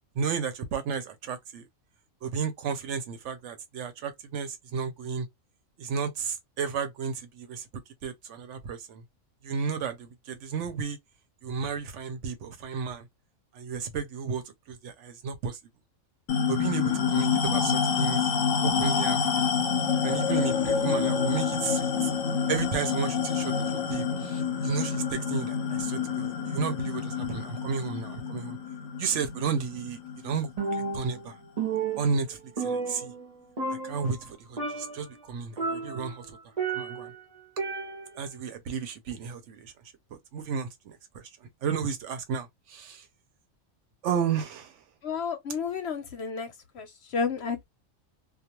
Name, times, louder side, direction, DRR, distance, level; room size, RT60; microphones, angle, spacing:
voice 1, 0.2-1.6 2.2-5.3 5.8-7.6 8.0-9.0 9.4-11.0 11.4-13.1 13.5-14.4 14.7-15.6 16.5-18.2 18.6-19.6 20.0-21.9 22.5-28.6 29.0-30.0 30.2-31.4 32.0-33.1 33.8-36.4 36.7-37.1 38.2-39.7 40.3-43.0 44.0-44.7, right 6 dB, 70° right, 0.9 m, -33 dB
sound 1, 16.3-31.1, left 6 dB, 85° left, 1.0 m, -28 dB
Percussion, 30.6-31.3 31.6-33.3 33.6-34.3 34.6-35.1 35.6-37.1 37.6-38.2, right 4 dB, 40° right, 0.6 m, -32 dB
voice 2, 45.0-47.6, left 5 dB, 60° left, 0.8 m, -32 dB
2.3 x 2.3 x 2.8 m
omnidirectional pair, 1.4 m